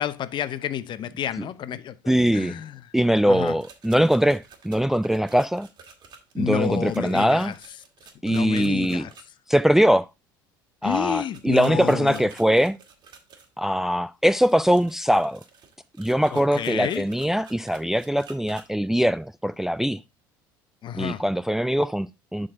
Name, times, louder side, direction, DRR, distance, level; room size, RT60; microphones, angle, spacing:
voice 1, 0.0-2.7 3.3-3.5 6.4-7.5 8.2-9.1 10.8-12.3 16.3-17.0 20.8-21.2, left 10 dB, 45° left, 0.8 m, -30 dB
voice 2, 2.1-2.6 2.9-5.7 6.3-7.5 8.2-9.1 9.5-10.1 10.8-12.8 13.6-15.4 16.0-20.0 21.0-22.5, equal, 5° right, 0.4 m, -22 dB
Shaking Tumbler with Ice, 3.4-9.2 11.3-13.5 14.3-18.7, right 5 dB, 40° right, 2.1 m, -50 dB
11.5 x 4.0 x 3.7 m
hypercardioid pair, 70°, 11 cm